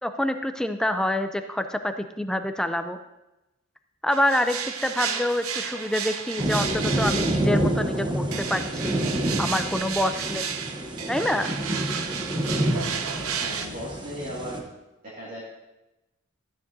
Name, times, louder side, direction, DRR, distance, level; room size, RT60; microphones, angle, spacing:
voice 1, 0.0-3.0 4.0-9.0 9.4-10.5 11.1-11.5, left 1 dB, 5° left, 8 dB, 0.4 m, -26 dB
sound 1, 4.1-7.7 8.3-13.7, right 7 dB, 85° right, 0.8 m, -32 dB
sound 2, 6.4-14.6, right 1 dB, 20° right, 1.0 m, -28 dB
voice 2, 13.3-14.6 15.0-15.4, equal, 40° right, -7 dB, 2.1 m, -36 dB
13.0 x 9.2 x 2.7 m, 0.97 s
head